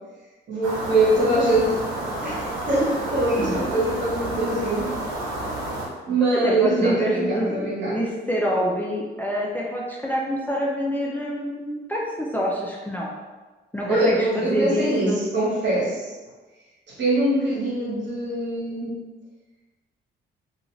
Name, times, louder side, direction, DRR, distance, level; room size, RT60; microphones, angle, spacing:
voice 1, 0.5-1.7 2.2-4.9 6.1-8.0 13.9-16.1 16.9-19.0, right 2 dB, 60° right, -6 dB, 1.2 m, -23 dB
sound 1, 0.6-5.9, right 1 dB, 85° right, 0.8 m, -30 dB
voice 2, 6.2-13.1 13.7-15.2, equal, 10° left, -4 dB, 0.4 m, -26 dB
2.4 x 2.4 x 3.1 m, 1.2 s
cardioid pair, 90°, 20 cm